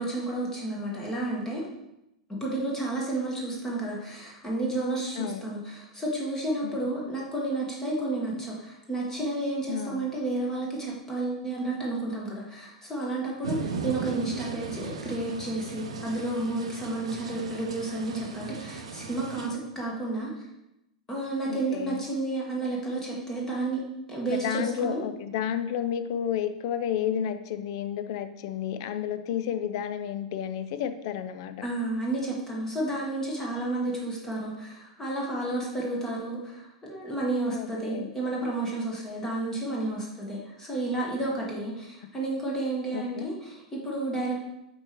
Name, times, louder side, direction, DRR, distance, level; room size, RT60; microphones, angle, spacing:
voice 1, 0.0-1.6 2.4-20.3 21.1-23.8 24.1-25.0 31.6-44.4, right 2 dB, 15° left, -3 dB, 1.5 m, -31 dB
voice 2, 5.2-5.5 6.6-6.9 9.7-10.1 21.5-22.0 24.3-31.7 37.5-38.1 42.9-43.3, left 9 dB, 50° left, 10 dB, 0.4 m, -31 dB
sound 1, 13.4-19.5, right 5 dB, 65° right, 0.6 m, -37 dB
7.3 x 4.5 x 3.0 m, 0.87 s
figure-of-eight pair, 95°, 3 cm